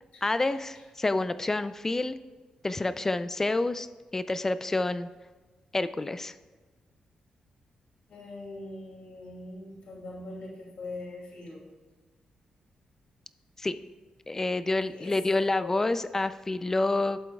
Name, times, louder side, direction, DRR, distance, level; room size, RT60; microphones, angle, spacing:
voice 1, 0.2-2.2 2.6-3.9 4.1-5.1 5.7-6.4 13.6-13.7 14.3-17.2, left 2 dB, 20° left, 13 dB, 0.3 m, -28 dB
voice 2, 8.1-11.7 14.9-15.9, left 2 dB, 70° left, -3 dB, 2.6 m, -42 dB
12.0 x 7.8 x 2.3 m, 1.3 s
cardioid pair, 105°, 2 cm